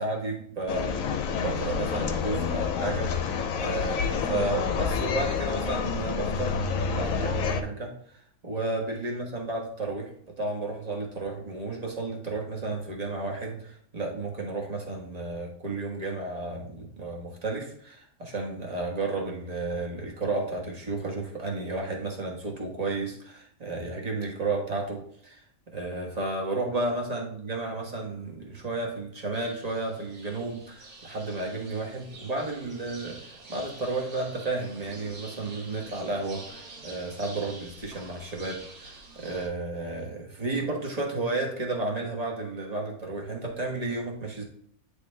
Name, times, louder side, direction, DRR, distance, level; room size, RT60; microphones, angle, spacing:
voice 1, 0.0-6.5 6.9-10.1 10.4-25.4 25.7-44.4, right 2 dB, 30° right, -1 dB, 1.2 m, -32 dB
sound 1, 0.7-7.6, left 5 dB, 70° left, 1.0 m, -28 dB
sound 2, 29.3-39.5, right 3 dB, 70° right, 1.9 m, -47 dB
9.3 x 3.3 x 3.2 m, 0.63 s
omnidirectional pair, 1.6 m